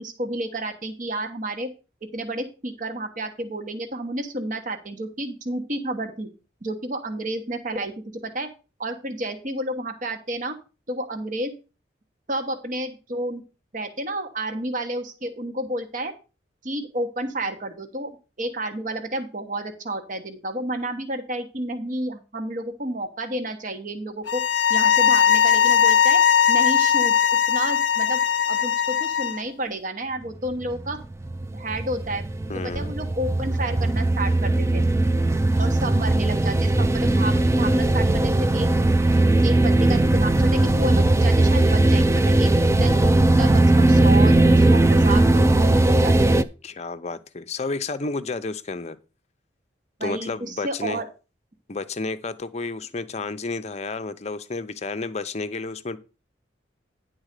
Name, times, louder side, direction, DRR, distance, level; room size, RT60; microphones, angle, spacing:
voice 1, 0.0-1.7 2.1-6.3 6.6-7.9 8.2-8.5 8.8-10.5 10.9-11.5 12.3-13.4 13.7-16.1 16.6-18.1 18.4-24.4 24.7-26.2 26.5-27.1 27.5-28.2 28.5-31.0 31.5-32.2 32.6-34.9 35.6-38.7 39.4-46.4 50.0-51.0, right 1 dB, 45° right, 1.1 m, -30 dB
sound 1, 24.3-29.4, left 8 dB, 75° left, 0.5 m, -19 dB
sound 2, 30.5-46.4, right 2 dB, 15° right, 0.4 m, -19 dB
voice 2, 32.5-32.9 46.6-49.0 50.0-51.0 51.7-56.0, left 3 dB, 35° left, 0.6 m, -31 dB
10.0 x 4.0 x 6.5 m
head